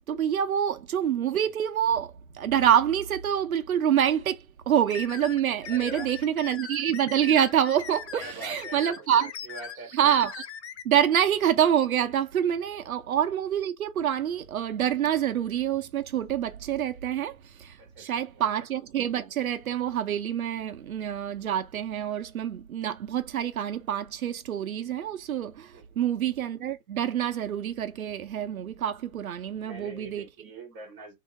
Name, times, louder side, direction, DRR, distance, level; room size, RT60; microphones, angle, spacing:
voice 1, 0.1-9.3 9.9-10.5 10.8-30.2, right 9 dB, 85° right, 0.8 m, -26 dB
sound 1, 4.9-10.8, left 8 dB, 55° left, 0.6 m, -40 dB
voice 2, 5.7-6.5 8.1-9.9 12.8-12.9 17.8-18.5 25.7-26.0 29.4-31.2, right 2 dB, 15° right, 1.9 m, -44 dB
3.6 x 2.9 x 4.5 m
hypercardioid pair, 175°, 41 cm